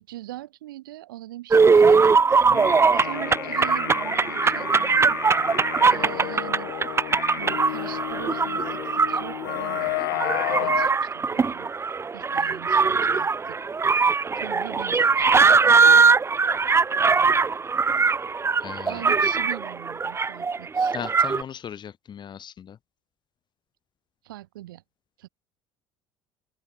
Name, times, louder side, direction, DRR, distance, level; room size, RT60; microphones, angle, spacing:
voice 1, 0.0-2.4 2.9-5.2 5.9-6.7 7.3-11.7 12.1-13.6 14.4-15.8 18.9-20.9 24.2-24.8 25.2-25.3, right 15 dB, 90° right, 1.8 m, -41 dB
sound 1, 1.5-21.4, right 5 dB, 25° right, 1.0 m, -21 dB
sound 2, 2.4-10.9, left 29 dB, 80° left, 1.3 m, -32 dB
voice 2, 18.6-19.0 20.9-22.8, left 8 dB, 45° left, 2.3 m, -37 dB
open air
hypercardioid pair, 75°, 11 cm